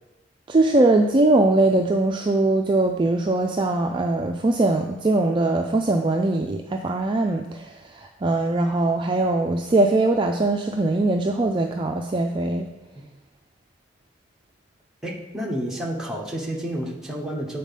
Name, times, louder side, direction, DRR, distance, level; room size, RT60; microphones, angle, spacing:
voice 1, 0.5-12.7, right 2 dB, 25° right, 3 dB, 0.3 m, -21 dB
voice 2, 15.0-17.6, right 1 dB, 5° right, -2 dB, 0.9 m, -30 dB
7.6 x 4.0 x 5.4 m, 1.0 s
head